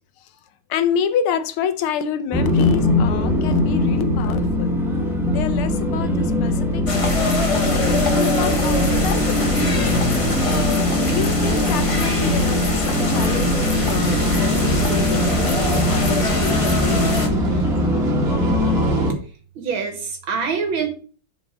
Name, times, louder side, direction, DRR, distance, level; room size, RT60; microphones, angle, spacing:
voice 1, 0.7-4.8 5.3-10.4 10.8-17.1, left 8 dB, 85° left, 1.7 m, -28 dB
sound 1, 2.3-19.1, left 1 dB, ahead, 0.8 m, -21 dB
sound 2, 3.5-19.1, right 4 dB, 45° right, 1.7 m, -37 dB
sound 3, 6.9-17.3, left 3 dB, 30° left, 0.5 m, -24 dB
voice 2, 19.6-20.9, right 5 dB, 70° right, 1.9 m, -27 dB
7.5 x 4.8 x 5.1 m
omnidirectional pair, 2.3 m